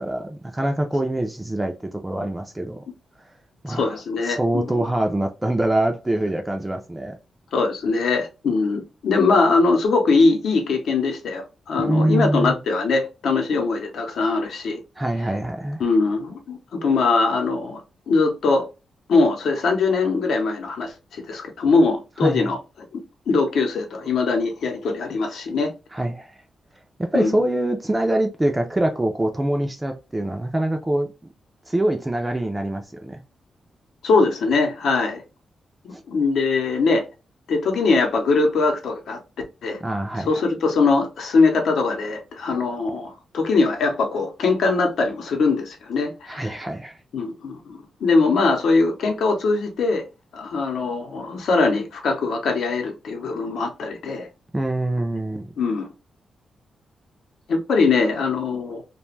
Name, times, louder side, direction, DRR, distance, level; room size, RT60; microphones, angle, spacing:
voice 1, 0.0-2.8 3.6-4.0 4.2-7.2 11.8-12.6 15.0-15.8 22.2-22.5 25.9-26.4 27.0-31.3 31.7-33.2 35.9-36.0 39.8-40.4 46.3-46.9 54.5-55.5, right 1 dB, 10° right, 0.3 m, -24 dB
voice 2, 3.7-4.9 7.5-14.8 15.8-17.8 18.1-18.7 19.1-22.6 22.9-25.7 27.1-27.4 34.0-35.2 35.8-37.0 37.5-39.2 39.6-39.8 40.3-46.6 47.1-50.0 50.3-54.3 55.6-55.9 57.5-58.8, left 3 dB, 75° left, 0.7 m, -21 dB
2.4 x 2.2 x 3.1 m
wide cardioid pair, 150°, 0 cm